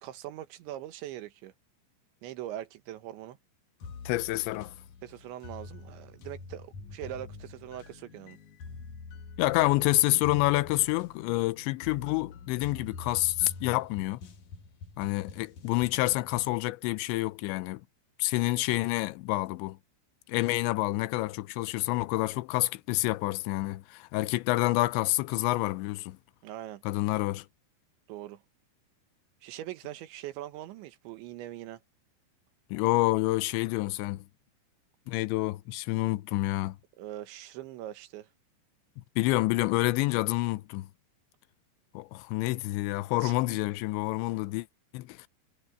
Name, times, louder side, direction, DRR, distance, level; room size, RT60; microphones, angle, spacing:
voice 1, 0.0-1.5 2.2-3.4 5.0-8.4 26.4-26.8 28.1-28.4 29.4-31.8 37.0-38.3 43.1-43.3, right 13 dB, 90° right, 3.7 m, -42 dB
sound 1, 3.8-16.6, left 4 dB, 50° left, 2.8 m, -46 dB
voice 2, 4.1-4.7 9.4-14.2 15.0-17.8 18.2-19.8 20.3-26.2 26.9-27.5 32.7-34.2 35.1-36.8 39.2-40.9 41.9-44.7 44.9-45.3, left 19 dB, 90° left, 3.0 m, -28 dB
omnidirectional pair, 5.1 m